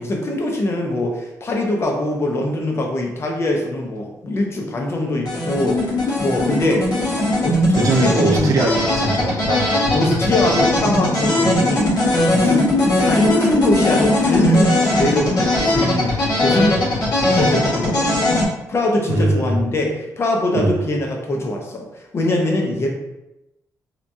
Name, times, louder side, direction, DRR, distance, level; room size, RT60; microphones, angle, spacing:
voice 1, 0.0-5.9 6.2-6.9 7.4-8.5 9.9-11.9 12.3-12.7 13.0-16.8 17.3-18.4 18.7-21.9 22.1-22.9, left 1 dB, 40° left, 1 dB, 0.6 m, -22 dB
sound 1, 5.2-18.5, left 1 dB, 70° left, 1.1 m, -19 dB
voice 2, 7.7-9.7 19.1-19.6 20.5-20.7, right 3 dB, 60° right, 2 dB, 0.5 m, -20 dB
2.8 x 2.2 x 2.6 m, 0.92 s
cardioid pair, 90°, 7 cm